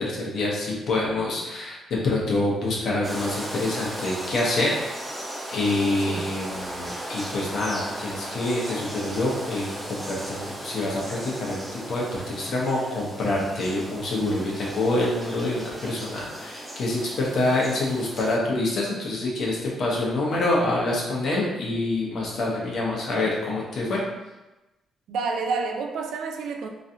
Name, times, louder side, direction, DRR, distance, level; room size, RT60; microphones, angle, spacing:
voice 1, 0.0-1.8 2.0-4.7 5.5-24.0, left 2 dB, 55° left, -4 dB, 0.8 m, -26 dB
sound 1, 3.0-18.4, right 1 dB, 10° right, 0.5 m, -36 dB
voice 2, 25.1-26.7, right 4 dB, 75° right, 3 dB, 0.3 m, -29 dB
3.0 x 2.7 x 2.6 m, 1.0 s
cardioid pair, 145°, 0 cm